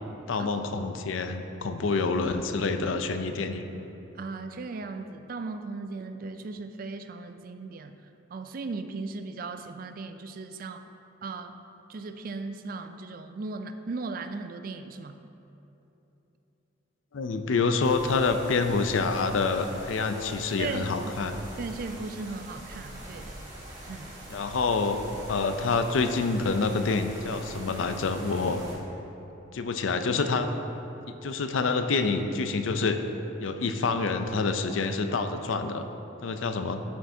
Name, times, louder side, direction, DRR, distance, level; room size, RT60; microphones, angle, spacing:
voice 1, 0.3-3.7 17.1-21.4 24.3-25.0 25.3-28.6 29.5-30.5 31.1-33.0 33.4-35.9 36.2-36.8, left 4 dB, 80° left, 8 dB, 0.5 m, -27 dB
voice 2, 4.2-8.0 8.3-10.8 11.2-11.6 11.9-15.2 20.6-21.1 21.6-23.4 23.9-24.1, right 3 dB, 45° right, 8 dB, 0.3 m, -37 dB
sound 1, 17.8-28.7, right 1 dB, 20° right, 1.7 m, -43 dB
11.5 x 6.4 x 2.7 m, 3.0 s
head